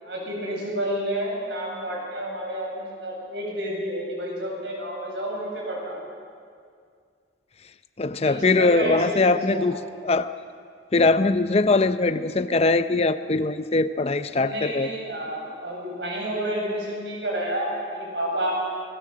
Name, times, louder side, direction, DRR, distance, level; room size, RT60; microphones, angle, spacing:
voice 1, 0.0-6.0 8.2-9.7 14.3-18.5, right 1 dB, 65° right, -2 dB, 7.8 m, -30 dB
voice 2, 8.0-10.3 10.9-14.9, left 3 dB, 35° left, 12 dB, 0.6 m, -21 dB
26.5 x 19.0 x 7.5 m, 2.2 s
head